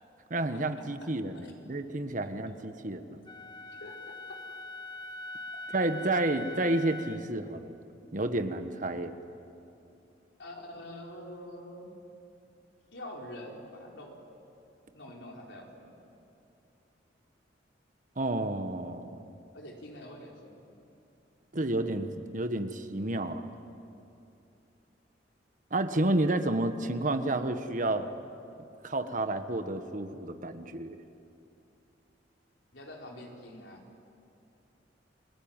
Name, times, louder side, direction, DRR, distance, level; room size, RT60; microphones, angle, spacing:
voice 1, 0.3-3.2 5.7-7.7 8.1-9.1 18.2-19.2 21.5-23.5 25.7-28.1 28.8-31.0, right 2 dB, 45° right, 8 dB, 1.4 m, -30 dB
Wind instrument woodwind instrument, 3.3-7.3, left 2 dB, 25° left, 1.0 m, -42 dB
voice 2, 10.4-11.9 12.9-14.2 14.9-16.0 19.5-20.8 32.7-33.9, left 1 dB, 75° left, 0 dB, 4.8 m, -45 dB
30.0 x 21.0 x 9.1 m, 2.7 s
head